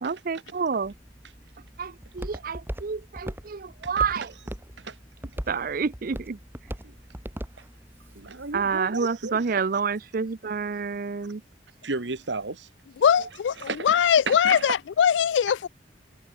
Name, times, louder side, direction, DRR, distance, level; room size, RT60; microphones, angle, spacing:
voice 1, 0.0-0.9 1.8-4.3 5.5-6.4 8.5-11.4, right 5 dB, 50° right, 0.6 m, -28 dB
Walk footsteps, 0.8-8.8, equal, 10° right, 2.4 m, -40 dB
voice 2, 8.2-9.4 11.8-12.7 13.1-13.3 13.6-14.0 14.3-14.7, right 3 dB, 80° right, 1.6 m, -33 dB
voice 3, 13.0-15.7, left 8 dB, 85° left, 0.3 m, -21 dB
head